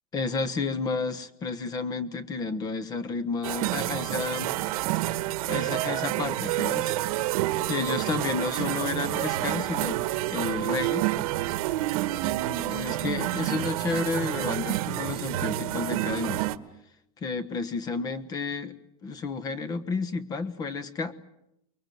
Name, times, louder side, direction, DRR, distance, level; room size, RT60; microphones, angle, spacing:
voice 1, 0.1-4.6 5.5-7.0 7.7-10.0 10.3-11.0 12.6-16.4 17.2-18.7 19.0-21.1, left 4 dB, 20° left, 16 dB, 1.2 m, -31 dB
sound 1, 3.4-16.6, right 16 dB, 65° right, 1.2 m, -28 dB
25.0 x 23.0 x 9.3 m, 0.83 s
supercardioid pair, 175°, 20 cm